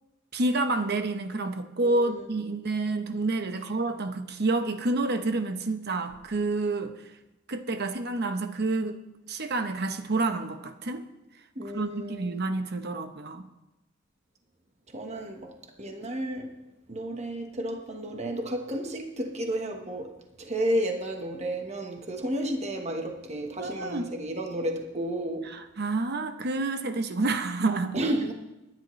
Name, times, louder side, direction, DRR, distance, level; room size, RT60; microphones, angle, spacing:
voice 1, 0.3-7.1 7.5-9.0 9.3-11.1 11.7-13.5 23.6-24.1 25.5-27.9, right 2 dB, 55° right, 0.9 m, -29 dB
voice 2, 1.8-2.3 11.5-12.5 14.9-16.6 16.9-25.5 27.9-28.3, right 1 dB, 35° right, 1.3 m, -32 dB
24.0 x 10.5 x 3.2 m
head